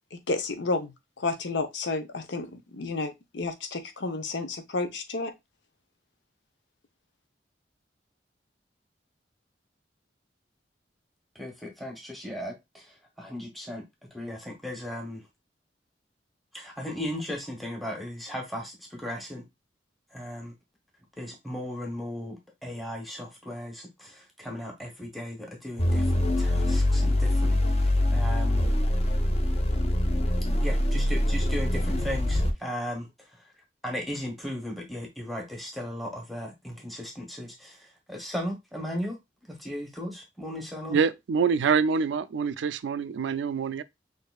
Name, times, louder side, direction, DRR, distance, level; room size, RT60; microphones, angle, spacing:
voice 1, 0.1-5.3, left 3 dB, 80° left, 0.8 m, -31 dB
voice 2, 11.3-12.9 13.2-13.8 14.1-15.2 16.5-19.4 20.1-20.5 21.2-28.7 30.6-33.1 33.8-37.8 38.1-39.2 39.5-41.0, equal, ahead, 0.9 m, -36 dB
sound 1, 25.8-32.5, left 1 dB, 35° left, 0.7 m, -24 dB
voice 3, 40.9-43.8, right 6 dB, 90° right, 0.4 m, -25 dB
6.4 x 2.6 x 2.3 m
head